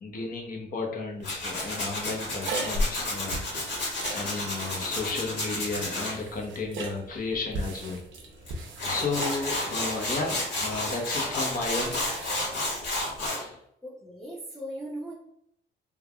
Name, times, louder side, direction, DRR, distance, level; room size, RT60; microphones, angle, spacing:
voice 1, 0.0-3.8 4.1-8.0 8.9-12.1 13.4-13.6, left 3 dB, 45° left, 0 dB, 0.8 m, -33 dB
Tools, 1.2-6.1 8.5-8.6 8.8-13.4, left 2 dB, 65° left, 1.4 m, -31 dB
sound 1, 1.2-13.3, right 1 dB, 70° right, 0.6 m, -38 dB
voice 2, 13.8-15.1, right 1 dB, ahead, -7 dB, 0.7 m, -38 dB
3.3 x 2.2 x 2.3 m, 0.71 s
cardioid pair, 90°, 20 cm